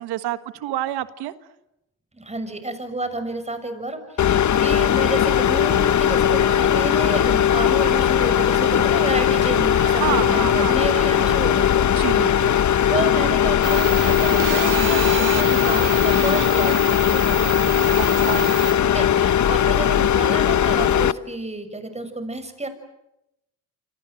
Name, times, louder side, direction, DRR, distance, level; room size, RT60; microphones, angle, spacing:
voice 1, 0.0-1.3 9.7-10.8 12.0-12.5 17.9-18.5, right 14 dB, 90° right, 12 dB, 1.7 m, -28 dB
voice 2, 2.1-12.5 12.9-17.7 18.8-22.7, right 2 dB, 15° right, 10 dB, 6.6 m, -30 dB
sound 1, 4.2-21.1, left 9 dB, 50° left, 1.0 m, -19 dB
sound 2, 13.6-18.7, right 8 dB, 55° right, 3.9 m, -30 dB
28.0 x 26.5 x 7.9 m, 0.87 s
cardioid pair, 80°, 38 cm